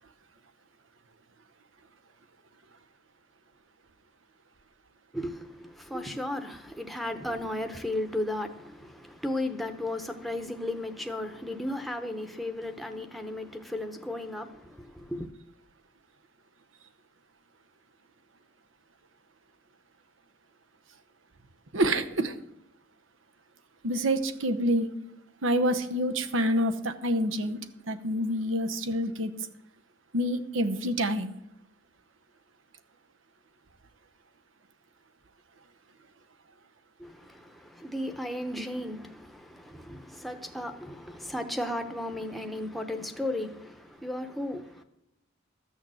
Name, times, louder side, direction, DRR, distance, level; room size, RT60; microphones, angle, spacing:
voice 1, 5.1-15.3 37.0-44.8, left 1 dB, ahead, 0.8 m, -35 dB
voice 2, 21.7-22.3 23.8-24.9 25.4-27.6 27.9-29.3 30.1-31.3, equal, 80° right, 1.0 m, -27 dB
13.5 x 6.6 x 7.6 m
head